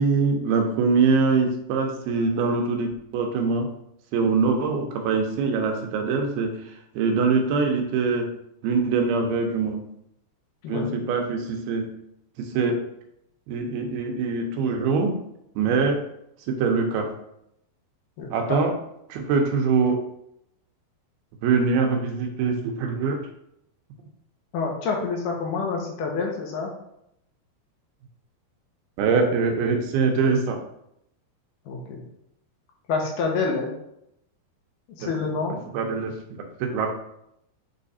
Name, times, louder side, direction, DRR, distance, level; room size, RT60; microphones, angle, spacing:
voice 1, 0.0-3.7 4.1-8.3 8.6-9.8 10.7-11.9 12.4-12.8 13.5-15.2 15.6-16.0 16.5-17.1 18.3-18.7 19.1-20.0 21.4-23.2 29.0-30.6 35.0-35.1 35.7-36.9, right 4 dB, 85° right, 3 dB, 2.8 m, -23 dB
voice 2, 10.6-11.0 18.2-18.6 24.5-26.7 31.7-32.0 32.9-33.7 35.0-35.6, left 4 dB, 70° left, 0 dB, 2.4 m, -27 dB
7.5 x 3.3 x 4.2 m, 0.78 s
omnidirectional pair, 4.4 m